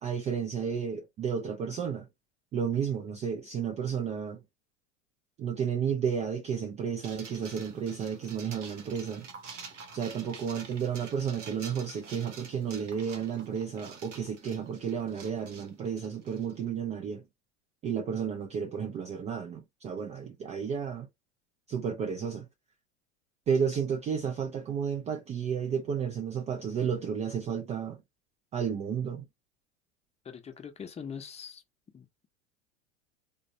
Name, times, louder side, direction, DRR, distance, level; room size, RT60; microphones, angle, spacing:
voice 1, 0.0-2.1 2.5-4.4 5.4-9.3 9.9-17.2 17.8-21.1 21.7-22.5 23.5-28.0 28.5-29.3, right 7 dB, 20° right, 0.3 m, -32 dB
sound 1, 7.0-16.6, right 5 dB, 85° right, 0.8 m, -48 dB
voice 2, 30.2-31.6 31.9-32.1, left 7 dB, 20° left, 0.7 m, -42 dB
3.2 x 2.1 x 2.6 m
figure-of-eight pair, 85°, 36 cm